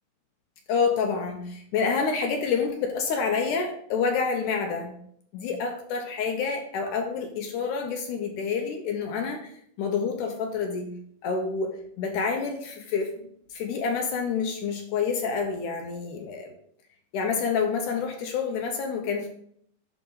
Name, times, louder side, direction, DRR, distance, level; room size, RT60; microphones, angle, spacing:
voice 1, 0.7-5.0 5.3-13.1 13.5-16.5 17.1-19.3, left 5 dB, 75° left, 4 dB, 2.0 m, -28 dB
11.0 x 3.9 x 3.9 m, 0.66 s
omnidirectional pair, 4.1 m